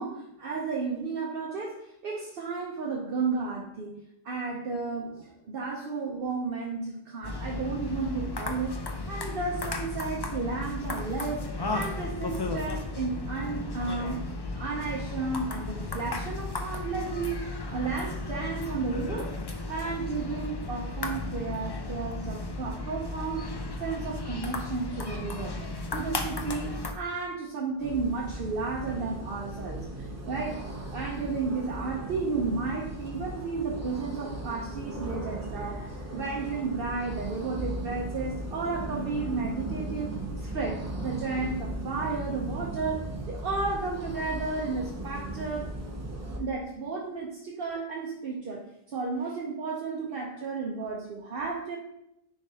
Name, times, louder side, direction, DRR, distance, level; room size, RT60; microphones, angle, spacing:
voice 1, 0.0-3.9 4.2-8.8 9.1-11.4 11.7-19.3 19.7-23.5 23.8-30.6 30.9-45.7 46.4-51.8, right 4 dB, 65° right, -2 dB, 1.0 m, -33 dB
sound 1, 7.2-26.9, left 2 dB, 30° left, 0.5 m, -35 dB
sound 2, 27.8-46.4, right 1 dB, 20° right, 0.7 m, -37 dB
9.8 x 3.8 x 2.8 m, 0.82 s
omnidirectional pair, 1.0 m